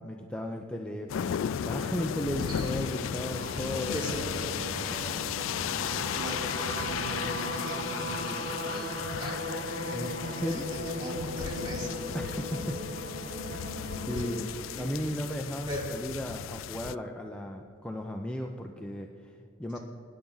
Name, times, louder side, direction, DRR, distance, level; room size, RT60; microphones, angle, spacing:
voice 1, 0.0-4.1 4.3-4.4 9.9-10.7 12.1-12.8 13.5-14.5 14.8-19.8, equal, 5° left, 2 dB, 0.6 m, -35 dB
sound 1, 1.1-17.0, left 9 dB, 75° left, 0.3 m, -35 dB
sound 2, 1.3-15.7, right 1 dB, 55° right, 0.9 m, -38 dB
voice 2, 3.9-5.0 5.7-9.5 9.8-12.0 14.1-14.4 14.8-14.9 15.7-15.8 19.7-19.8, equal, 25° right, -3 dB, 3.4 m, -40 dB
24.0 x 10.0 x 4.0 m, 2.5 s
head